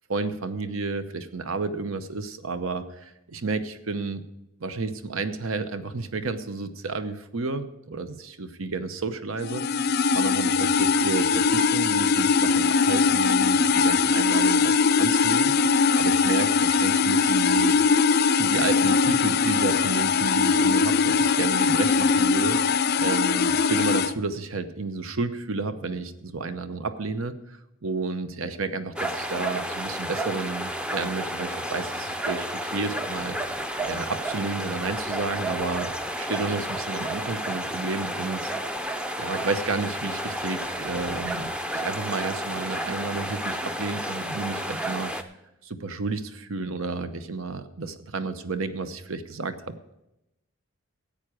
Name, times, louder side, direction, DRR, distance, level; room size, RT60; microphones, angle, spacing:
voice 1, 0.1-4.2 4.6-9.9 10.1-15.5 16.0-17.8 18.4-38.5 39.2-45.1 45.6-49.8, right 3 dB, 75° right, 11 dB, 0.9 m, -31 dB
sound 1, 9.4-24.1, left 5 dB, 45° left, 0.4 m, -21 dB
sound 2, 29.0-45.2, right 1 dB, 5° right, 0.5 m, -31 dB
13.5 x 8.8 x 5.0 m, 0.89 s
head